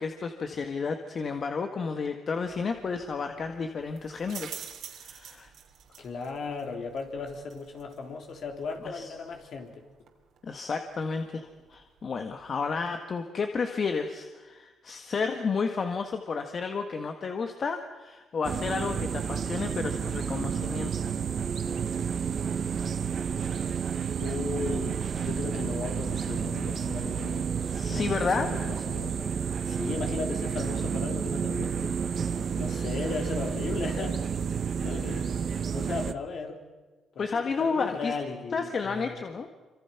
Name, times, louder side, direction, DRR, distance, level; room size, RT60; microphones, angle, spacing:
voice 1, 0.0-4.6 4.9-5.5 8.9-9.1 10.4-21.0 27.7-28.5 37.2-38.1 38.5-39.5, left 5 dB, 45° left, 6 dB, 1.6 m, -31 dB
sound 1, 2.3-13.0, right 8 dB, 70° right, 3.1 m, -49 dB
voice 2, 6.0-9.9 24.2-27.5 27.9-32.0 32.5-34.3 34.8-35.4 35.7-36.6 37.2-39.2, left 4 dB, 60° left, 3 dB, 3.6 m, -36 dB
sound 2, 18.4-36.1, right 7 dB, 50° right, 1.0 m, -30 dB
27.0 x 25.5 x 5.9 m, 1.2 s
cardioid pair, 90°, 0 cm